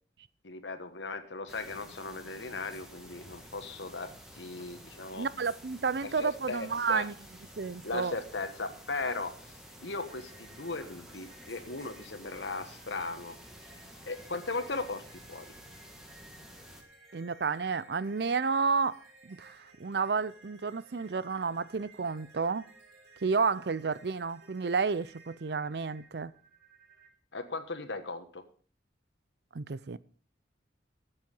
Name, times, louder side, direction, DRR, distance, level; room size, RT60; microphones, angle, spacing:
voice 1, 0.4-5.3 6.0-7.1 7.8-9.3 9.8-13.3 14.0-15.0 15.3-15.5 27.3-28.4, left 3 dB, 85° left, 1.4 m, -37 dB
sound 1, 1.5-16.8, equal, 5° right, 1.8 m, -51 dB
voice 2, 5.1-7.1 7.6-8.2 17.1-22.6 23.2-26.3 29.5-30.0, right 5 dB, 65° right, 0.5 m, -31 dB
sound 2, 9.4-27.1, right 3 dB, 85° right, 3.6 m, -58 dB
14.0 x 7.8 x 5.4 m
head